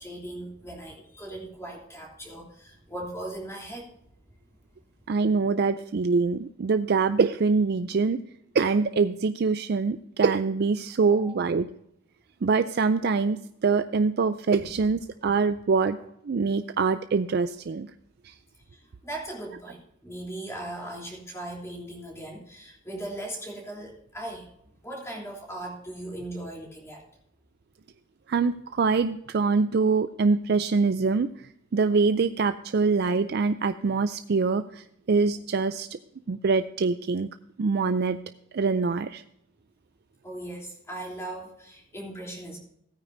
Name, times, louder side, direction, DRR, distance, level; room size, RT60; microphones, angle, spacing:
voice 1, 0.0-3.9 11.0-11.3 14.5-14.6 16.0-16.1 18.7-24.5 24.8-27.0 40.2-42.6, right 1 dB, 15° left, -1 dB, 3.2 m, -38 dB
voice 2, 5.1-8.2 8.5-11.7 12.4-16.0 16.2-17.9 18.2-18.3 28.3-31.3 31.7-35.9 36.3-37.3 37.6-38.2 38.5-39.2, right 4 dB, 50° right, 10 dB, 0.4 m, -24 dB
16.0 x 9.4 x 2.6 m, 0.73 s
head